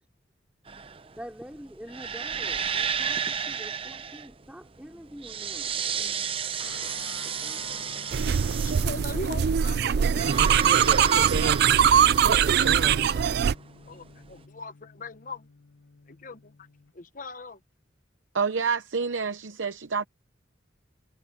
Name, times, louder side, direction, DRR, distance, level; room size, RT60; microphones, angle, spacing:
sound 1, 0.7-14.3, right 7 dB, 30° right, 0.7 m, -33 dB
voice 1, 1.2-5.7 7.2-7.7, equal, 5° right, 3.0 m, -45 dB
sound 2, 6.6-16.9, left 4 dB, 80° left, 1.0 m, -49 dB
sound 3, 8.1-13.5, right 8 dB, 55° right, 0.3 m, -21 dB
voice 2, 8.6-13.4 13.9-15.5 16.1-16.7 16.9-17.6, left 3 dB, 45° left, 1.0 m, -42 dB
voice 3, 18.3-20.0, right 5 dB, 75° right, 0.8 m, -28 dB
head